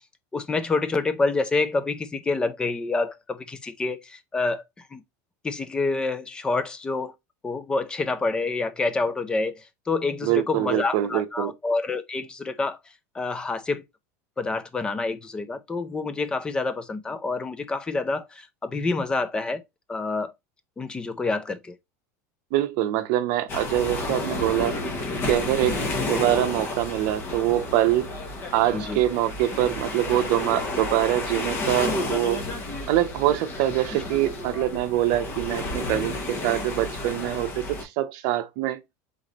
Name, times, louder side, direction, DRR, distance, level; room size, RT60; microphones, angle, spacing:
voice 1, 0.3-4.6 4.9-5.0 5.4-7.1 7.4-12.8 13.1-13.8 14.4-19.6 19.9-20.3 20.8-21.8 28.7-29.0, left 3 dB, 10° left, 0.4 m, -27 dB
voice 2, 10.2-11.5 22.5-24.8 25.2-28.1 28.5-32.4 32.9-38.8, right 13 dB, 50° right, 0.7 m, -24 dB
sound 1, 23.5-37.8, left 2 dB, 25° left, 0.9 m, -31 dB
3.8 x 3.2 x 3.9 m
supercardioid pair, 170°, 9 cm